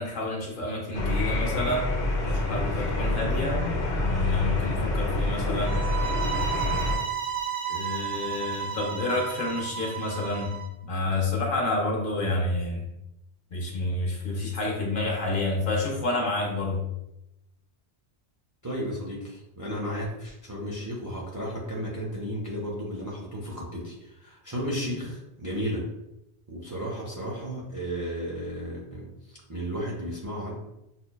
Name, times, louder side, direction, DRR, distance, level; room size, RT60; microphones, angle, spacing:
voice 1, 0.0-1.9 2.2-3.6 4.0-5.8 7.7-10.6 10.8-12.8 13.5-16.8, left 2 dB, 55° left, -1 dB, 0.8 m, -29 dB
sound 1, 0.9-7.0, left 2 dB, 80° left, 1.0 m, -27 dB
sound 2, 5.7-10.7, right 8 dB, 70° right, 0.9 m, -32 dB
voice 2, 18.6-25.9 26.5-30.5, equal, 25° right, -3 dB, 0.4 m, -34 dB
5.8 x 2.1 x 2.2 m, 0.89 s
omnidirectional pair, 1.1 m